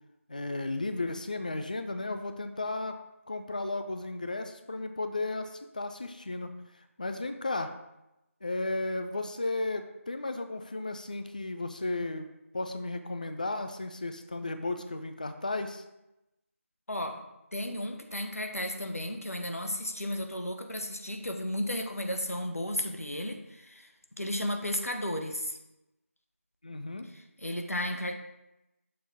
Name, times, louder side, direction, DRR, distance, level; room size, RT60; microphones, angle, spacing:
voice 1, 0.3-3.0 3.3-6.6 7.0-7.7 8.4-12.3 12.5-15.8 26.6-27.1, left 2 dB, 35° left, 8 dB, 0.4 m, -34 dB
voice 2, 16.9-17.2 17.5-23.9 24.2-25.6 27.1-28.2, left 1 dB, 85° left, 5 dB, 0.9 m, -34 dB
6.5 x 3.5 x 4.1 m, 0.92 s
figure-of-eight pair, 165°, 8 cm